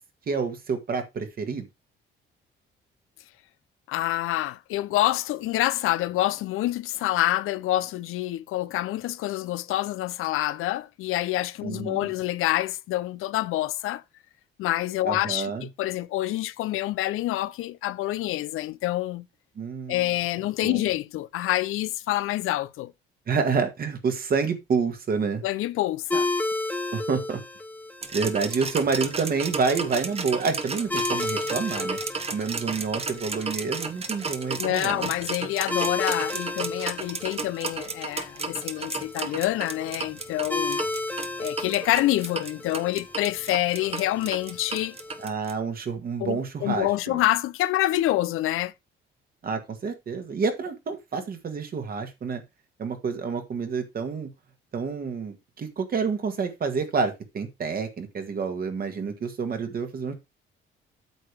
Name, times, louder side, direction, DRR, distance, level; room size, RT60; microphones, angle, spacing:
voice 1, 0.3-1.7 11.6-12.1 15.1-15.7 19.6-20.0 20.6-20.8 23.3-25.4 26.9-27.4 28.1-32.0 32.3-35.1 45.2-47.2 49.4-52.4 52.8-54.3 54.7-60.1, right 5 dB, 45° right, 1.8 m, -28 dB
voice 2, 3.9-14.0 14.6-19.3 19.9-22.9 25.4-26.3 34.6-40.8 41.4-45.0 46.2-48.7, left 15 dB, 90° left, 0.6 m, -27 dB
sound 1, 26.1-45.3, left 2 dB, 10° left, 0.9 m, -34 dB
sound 2, 28.0-45.5, right 4 dB, 30° right, 1.1 m, -33 dB
9.1 x 6.6 x 3.4 m
cardioid pair, 130°, 21 cm